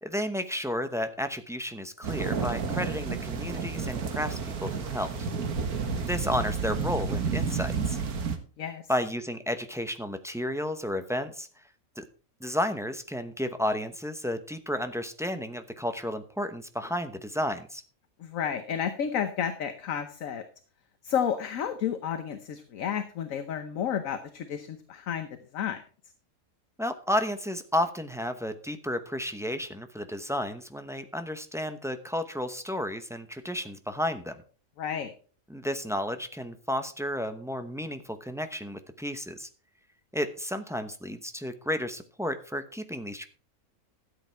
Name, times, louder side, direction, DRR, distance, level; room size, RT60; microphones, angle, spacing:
voice 1, 0.0-5.1 6.0-8.0 8.9-11.5 12.0-12.1 12.4-17.8 26.8-34.4 35.5-39.5 40.1-43.2, equal, 5° right, 8 dB, 0.6 m, -32 dB
sound 1, 2.0-8.4, right 5 dB, 85° right, 1.8 m, -31 dB
voice 2, 18.2-20.4 21.0-25.3 25.5-25.8 34.8-35.1, left 8 dB, 65° left, 9 dB, 1.3 m, -31 dB
13.0 x 8.1 x 4.5 m, 0.40 s
omnidirectional pair, 1.5 m